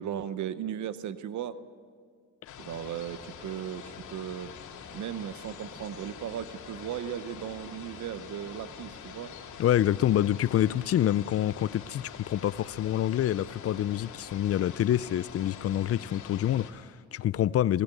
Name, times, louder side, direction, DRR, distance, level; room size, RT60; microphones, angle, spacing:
voice 1, 0.0-1.6 2.6-4.5 4.9-9.3, right 10 dB, 70° right, 0.9 m, -36 dB
sound 1, 2.5-16.7, left 7 dB, 80° left, 2.6 m, -45 dB
voice 2, 9.6-17.8, left 12 dB, 50° left, 0.5 m, -27 dB
20.5 x 17.0 x 7.9 m
cardioid pair, 90°, 30 cm